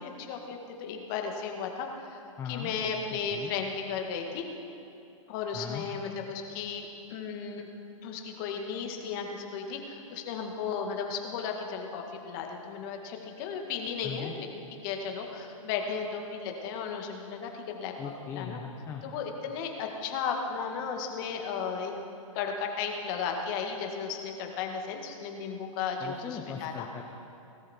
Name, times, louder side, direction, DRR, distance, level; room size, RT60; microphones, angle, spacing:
voice 1, 0.0-4.5 5.3-7.7 8.0-17.9 18.3-18.6 19.0-21.9 22.3-26.9, left 6 dB, 40° left, 3 dB, 2.0 m, -35 dB
voice 2, 2.4-2.7 3.3-3.5 5.5-5.9 14.0-14.4 18.0-19.0 26.0-27.0, left 7 dB, 15° left, 1 dB, 1.0 m, -39 dB
19.5 x 13.5 x 4.5 m, 2.9 s
hypercardioid pair, 145°, 17 cm